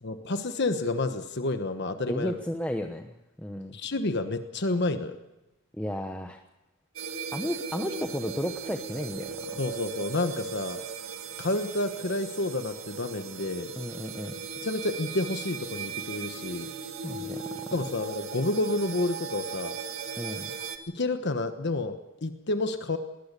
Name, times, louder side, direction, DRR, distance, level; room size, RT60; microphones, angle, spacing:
voice 1, 0.0-2.3 3.7-5.2 9.6-10.8 11.4-13.7 14.6-16.7 17.7-19.8 20.9-23.0, left 2 dB, 60° left, 8 dB, 1.2 m, -29 dB
voice 2, 2.1-3.7 5.8-6.4 7.3-9.6 13.8-14.3 17.0-17.6 20.2-20.5, equal, 5° left, 4 dB, 1.0 m, -33 dB
sound 1, 7.0-20.8, right 5 dB, 85° right, 1.8 m, -38 dB
20.5 x 19.5 x 6.8 m, 0.97 s
head